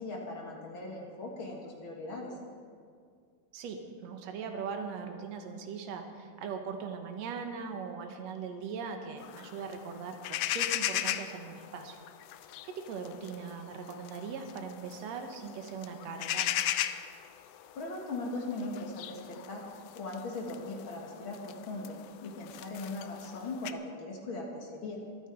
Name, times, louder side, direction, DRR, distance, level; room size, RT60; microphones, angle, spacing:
voice 1, 0.0-2.4 17.8-19.6 19.9-22.0 22.2-25.0, left 2 dB, 45° left, -1 dB, 1.7 m, -39 dB
voice 2, 3.5-12.0 12.4-16.5, right 5 dB, 65° right, 5 dB, 1.9 m, -40 dB
sound 1, 9.2-23.7, left 13 dB, 90° left, 1.8 m, -38 dB
25.0 x 9.0 x 4.5 m, 2.1 s
omnidirectional pair, 4.3 m